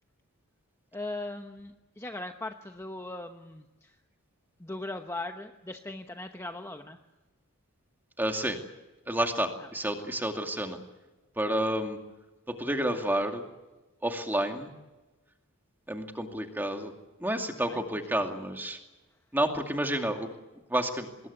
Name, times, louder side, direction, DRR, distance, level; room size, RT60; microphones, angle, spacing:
voice 1, 0.9-3.9 4.6-7.0 9.6-9.7 17.7-17.8, left 2 dB, 10° left, 5 dB, 1.0 m, -39 dB
voice 2, 8.2-8.6 9.1-10.8 11.4-12.0 12.5-13.4 14.0-14.7 15.9-16.9 17.2-18.8 19.3-20.3 20.7-21.1, right 1 dB, 10° right, 4 dB, 2.4 m, -30 dB
25.5 x 21.0 x 8.2 m, 1.1 s
head